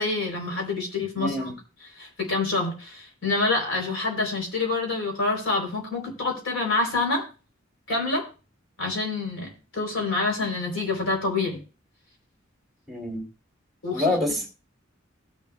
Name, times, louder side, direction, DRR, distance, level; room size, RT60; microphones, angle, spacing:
voice 1, 0.0-1.5 2.0-7.2 7.9-8.3 8.8-11.6 13.8-14.1, left 3 dB, 75° left, 0 dB, 3.4 m, -27 dB
voice 2, 1.2-1.5 12.9-13.2 13.9-14.5, left 2 dB, ahead, -1 dB, 2.7 m, -26 dB
20.0 x 7.0 x 2.3 m, 0.33 s
head